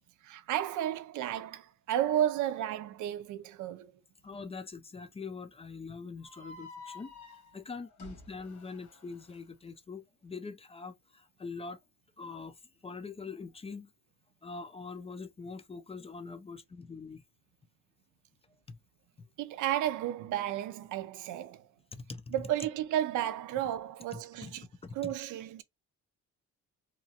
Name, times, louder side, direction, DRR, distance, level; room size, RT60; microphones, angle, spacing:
voice 1, 0.2-3.9 19.4-21.6 22.3-24.7 24.9-25.6, right 11 dB, 80° right, 0.5 m, -32 dB
voice 2, 4.2-7.1 7.5-11.8 12.2-12.6 12.8-13.9 14.4-17.2 18.7-18.8 21.9-22.3 24.1-24.5 24.8-25.1, left 4 dB, 20° left, 0.4 m, -43 dB
sound 1, 6.2-9.4, left 3 dB, 70° left, 1.3 m, -51 dB
2.9 x 2.3 x 2.8 m
cardioid pair, 90°, 30 cm